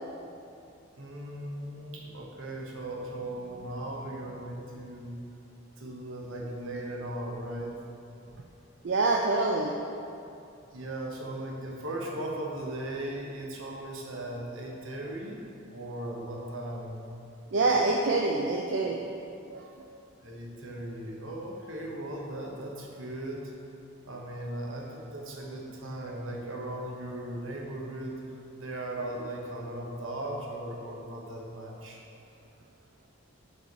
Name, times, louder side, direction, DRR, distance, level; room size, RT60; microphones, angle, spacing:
voice 1, 1.0-5.1 5.8-7.8 10.7-15.4 15.7-17.0 20.2-23.5 24.0-28.2 28.6-32.0, right 1 dB, 75° right, -1 dB, 0.9 m, -37 dB
voice 2, 8.8-9.7 17.5-19.0 19.5-19.6 26.0-26.2, right 3 dB, 60° right, 0 dB, 0.4 m, -26 dB
6.2 x 5.3 x 4.0 m, 2.6 s
head